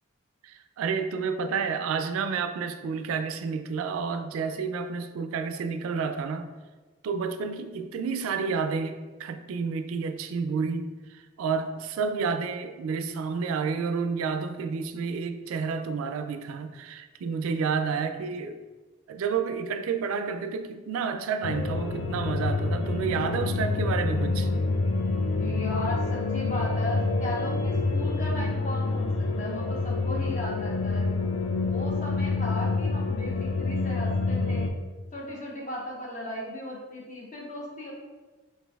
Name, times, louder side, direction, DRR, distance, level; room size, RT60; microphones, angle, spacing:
voice 1, 0.4-6.5 7.0-18.6 19.1-24.5, right 5 dB, 85° right, 8 dB, 0.3 m, -30 dB
sound 1, 21.4-34.7, left 3 dB, 70° left, 0.4 m, -27 dB
voice 2, 25.4-31.1 31.6-34.7 35.1-37.9, left 1 dB, 35° left, -4 dB, 0.9 m, -36 dB
5.0 x 2.6 x 2.3 m, 1.3 s
head